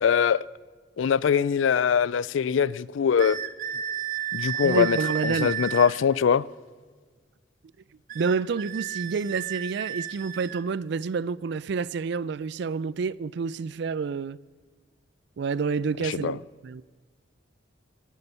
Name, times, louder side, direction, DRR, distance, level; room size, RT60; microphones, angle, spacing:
voice 1, 0.0-0.4 1.0-3.4 4.3-5.0 5.2-6.4 16.0-16.3, left 7 dB, 75° left, 0.4 m, -22 dB
sound 1, 3.2-6.0 8.1-10.7, right 10 dB, 45° right, 0.7 m, -33 dB
voice 2, 4.6-5.5 8.1-14.4 15.4-16.8, right 5 dB, 60° right, 0.4 m, -29 dB
18.0 x 9.9 x 5.5 m
head